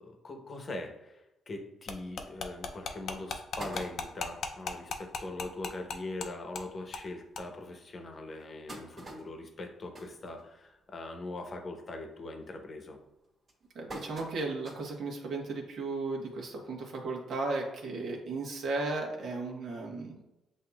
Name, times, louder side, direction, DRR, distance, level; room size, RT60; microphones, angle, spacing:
voice 1, 0.0-13.0, left 2 dB, 40° left, 4 dB, 0.9 m, -42 dB
sound 1, 1.9-6.3 6.5-6.6 6.9-7.1 7.3-7.4, left 4 dB, 60° left, 0.5 m, -36 dB
sound 2, 3.6-4.4 5.0-5.1 5.4-5.5 5.8-6.0 6.7-6.8 7.3-7.4 8.1-11.0 11.3-11.7 12.0-12.4 13.0-15.1 15.5-15.6 16.8-16.9, right 1 dB, 35° right, 1.6 m, -46 dB
voice 2, 13.7-20.2, right 3 dB, 65° right, 0 dB, 1.2 m, -35 dB
7.8 x 2.7 x 2.3 m, 0.94 s
cardioid pair, 90°, 0 cm